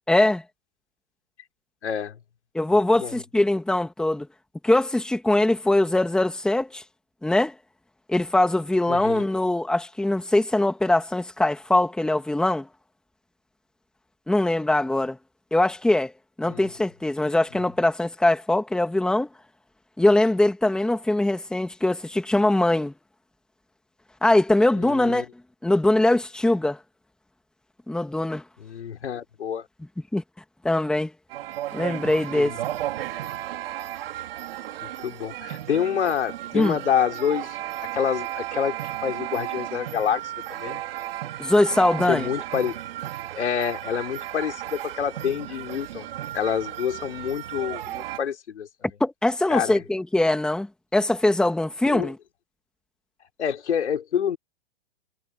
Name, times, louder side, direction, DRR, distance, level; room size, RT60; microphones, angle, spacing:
voice 1, 0.1-0.4 2.5-4.3 4.6-6.8 7.2-7.5 8.1-12.7 14.3-15.2 15.5-16.1 16.4-19.3 20.0-22.9 24.2-25.3 25.6-26.8 27.9-28.4 30.1-30.2 30.6-31.1 31.7-32.6 36.5-36.8 41.4-42.3 49.0-50.7 50.9-52.2, left 1 dB, ahead, 2.2 m, -22 dB
voice 2, 1.8-2.2 3.0-3.1 8.9-9.2 16.5-16.6 24.8-25.2 28.6-29.7 32.3-32.5 35.0-40.8 42.1-42.8 43.4-46.1 46.3-48.7 49.5-49.8 51.9-52.1 53.4-54.4, left 8 dB, 85° left, 4.3 m, -27 dB
sound 1, 31.3-48.2, right 13 dB, 60° right, 3.9 m, -34 dB
hypercardioid pair, 145°, 33 cm